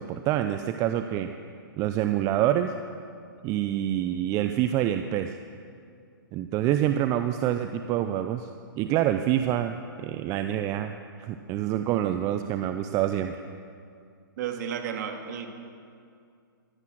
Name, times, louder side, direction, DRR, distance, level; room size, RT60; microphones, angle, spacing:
voice 1, 0.0-1.3 1.8-2.7 3.4-5.4 6.3-8.5 8.8-10.9 11.2-13.4, right 12 dB, 25° right, 8 dB, 0.6 m, -26 dB
voice 2, 14.4-15.5, right 8 dB, 50° right, 4 dB, 2.2 m, -32 dB
16.0 x 12.0 x 6.3 m, 2.3 s
hypercardioid pair, 125°, 12 cm